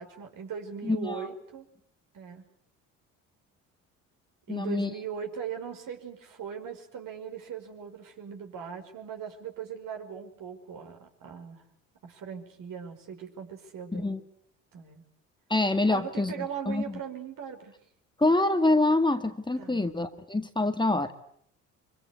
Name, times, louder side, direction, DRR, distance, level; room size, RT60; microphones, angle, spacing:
voice 1, 0.0-1.7 2.1-2.5 4.5-11.6 12.0-14.1 14.7-15.0 15.9-17.7 19.6-19.9 20.6-20.7, right 7 dB, 55° right, 4 dB, 5.4 m, -39 dB
voice 2, 0.8-1.3 4.5-4.9 13.9-14.2 15.5-16.8 18.2-21.1, left 2 dB, 10° left, 8 dB, 1.9 m, -26 dB
24.5 x 24.5 x 8.2 m, 0.68 s
hypercardioid pair, 60°, 38 cm